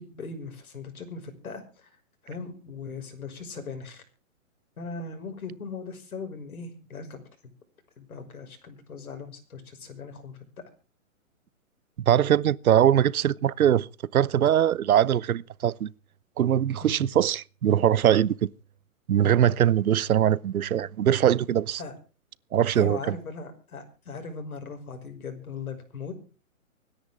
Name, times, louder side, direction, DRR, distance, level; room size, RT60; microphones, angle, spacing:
voice 1, 0.0-1.9 2.2-4.0 4.8-7.2 8.0-10.6 16.8-17.1 20.8-20.9 21.8-21.9 22.8-26.1, left 4 dB, 85° left, 5.8 m, -39 dB
voice 2, 12.1-15.9 16.4-18.4 19.1-21.8 22.5-23.2, right 10 dB, 85° right, 0.8 m, -22 dB
25.5 x 10.5 x 3.6 m
hypercardioid pair, 165°, 42 cm